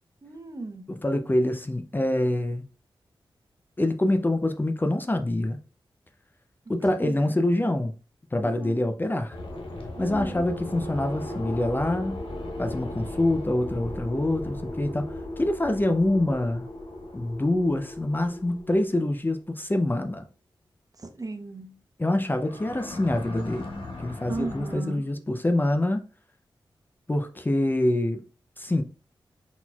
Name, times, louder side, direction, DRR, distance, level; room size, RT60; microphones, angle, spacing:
voice 1, 0.2-0.9 6.8-7.3 8.4-8.8 10.0-10.5 21.0-21.8 24.3-25.0, right 2 dB, 40° right, 0.8 m, -36 dB
voice 2, 0.9-2.7 3.8-5.6 6.7-8.0 8.3-9.4 10.0-12.2 12.6-15.0 15.4-16.7 17.1-20.3 22.0-23.7 24.0-26.0 27.1-28.2 28.6-28.8, left 1 dB, 20° left, 0.5 m, -25 dB
sound 1, 9.3-19.2 22.4-24.7, left 1 dB, 85° left, 0.8 m, -37 dB
4.2 x 4.1 x 2.3 m
cardioid pair, 50°, 9 cm